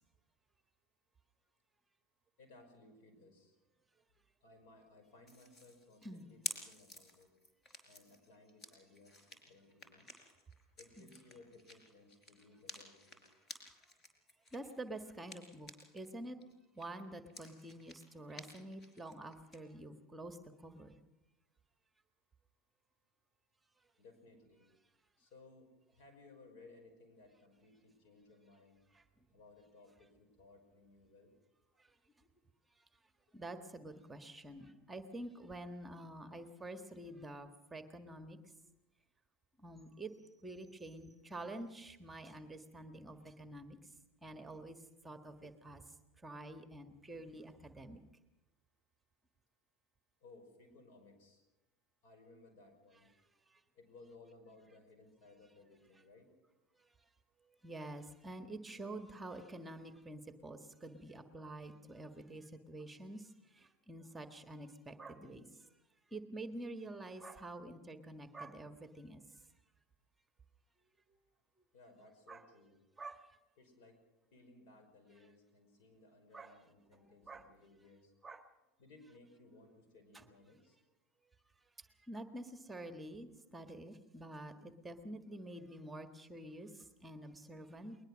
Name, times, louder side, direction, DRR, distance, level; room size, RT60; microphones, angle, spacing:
voice 1, 2.4-3.6 4.4-7.3 7.8-10.2 10.8-13.2 24.0-24.7 25.2-28.8 29.3-31.3 50.2-51.4 52.0-53.1 53.7-56.3 71.7-72.8 73.6-74.0 74.3-78.1 78.8-80.8, left 2 dB, 60° left, 6 dB, 5.5 m, -61 dB
sound 1, 5.3-16.1 16.4-19.6, left 1 dB, 35° left, 4.6 m, -51 dB
voice 2, 14.5-16.4 16.7-20.4 20.6-21.0 28.9-29.0 31.8-31.9 33.3-38.4 39.6-40.1 40.4-43.8 44.2-44.8 45.0-45.8 46.2-48.0 57.6-65.5 66.1-69.2 72.3-72.4 73.0-73.2 76.3-76.5 77.3-77.4 78.2-78.4 82.1-88.0, right 1 dB, 10° right, 7 dB, 1.6 m, -48 dB
21.0 x 20.5 x 6.3 m, 1.0 s
hypercardioid pair, 85°, 0 cm